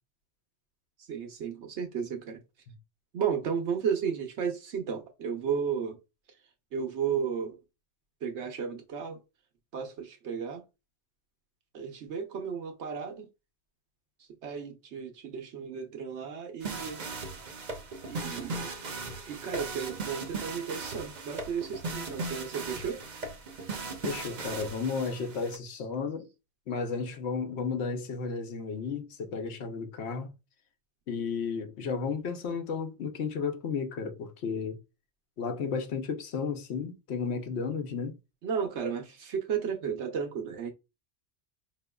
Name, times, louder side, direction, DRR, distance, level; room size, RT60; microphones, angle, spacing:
voice 1, 1.1-2.4 3.1-6.0 6.7-7.6 8.2-9.2 9.7-10.6 11.7-13.3 14.4-17.0 18.0-18.7 19.3-23.0 38.4-40.7, right 7 dB, 80° right, 1.1 m, -33 dB
sound 1, 16.6-25.6, right 3 dB, 45° right, 0.7 m, -38 dB
voice 2, 24.0-26.3 26.7-30.3 31.1-34.8 35.4-38.2, left 5 dB, 75° left, 1.0 m, -33 dB
4.9 x 2.9 x 2.2 m
omnidirectional pair, 1.1 m